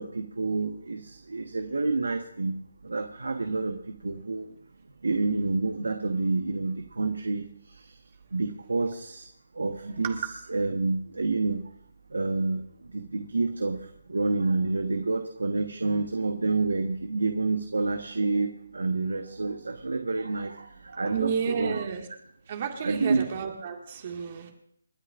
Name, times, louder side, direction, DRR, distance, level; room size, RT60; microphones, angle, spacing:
voice 1, 0.0-2.5 2.8-4.5 5.0-7.9 8.3-9.3 9.5-10.2 10.5-11.6 12.1-21.8 22.8-23.2, right 3 dB, 80° right, 6 dB, 1.2 m, -28 dB
voice 2, 21.1-22.1 22.5-24.5, right 7 dB, 40° right, 2 dB, 1.9 m, -31 dB
29.5 x 9.9 x 2.5 m, 0.68 s
figure-of-eight pair, 155°, 0 cm